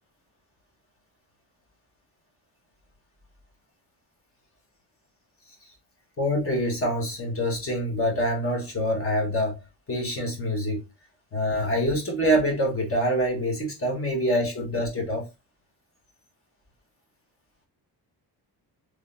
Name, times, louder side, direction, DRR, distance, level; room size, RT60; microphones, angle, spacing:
voice 1, 6.2-9.5 9.9-10.8 11.3-15.3, equal, 30° left, 1.2 m, -25 dB
3.8 x 3.1 x 2.5 m
cardioid pair, 160°, 42 cm